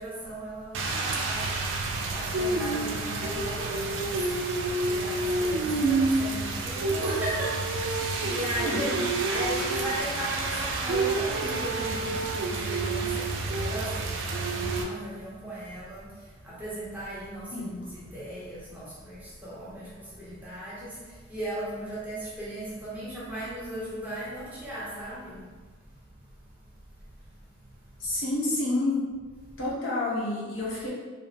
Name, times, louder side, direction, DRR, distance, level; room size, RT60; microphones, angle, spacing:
voice 1, 0.0-1.4 2.1-4.4 4.9-7.8 8.2-8.9 9.3-13.1 13.5-14.0 14.3-16.0 16.6-17.7 17.9-19.8 20.2-20.9 21.3-25.4, right 1 dB, 10° right, -9 dB, 0.7 m, -36 dB
Rain, 0.7-14.8, right 3 dB, 70° right, 0.3 m, -29 dB
voice 2, 8.6-9.0 17.5-17.9 28.0-29.0 29.6-30.9, left 2 dB, 85° left, -6 dB, 0.8 m, -29 dB
2.6 x 2.0 x 3.2 m, 1.4 s
head